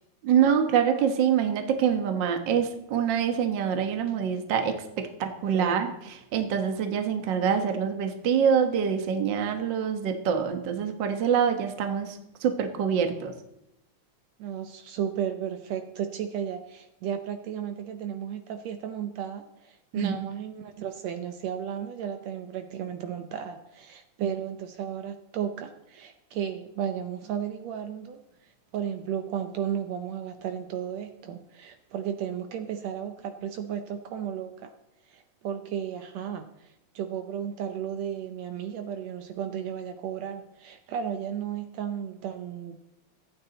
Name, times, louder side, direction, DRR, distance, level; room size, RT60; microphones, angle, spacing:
voice 1, 0.2-13.3 19.9-20.2, right 7 dB, 50° right, 6 dB, 1.6 m, -25 dB
voice 2, 5.2-5.8 14.4-28.2 28.7-34.7 35.1-42.8, right 9 dB, 70° right, 7 dB, 1.9 m, -34 dB
24.5 x 9.2 x 4.0 m, 0.89 s
omnidirectional pair, 3.3 m